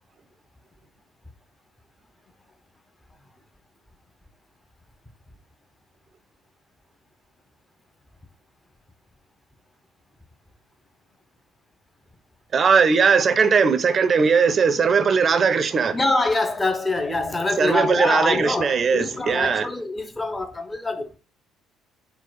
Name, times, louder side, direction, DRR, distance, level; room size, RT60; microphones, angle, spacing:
voice 1, 12.5-16.0 17.6-19.7, right 5 dB, 45° right, 0.5 m, -19 dB
voice 2, 15.9-21.1, left 2 dB, 20° left, 0.7 m, -24 dB
4.1 x 2.2 x 4.0 m
hypercardioid pair, 50°, 0 cm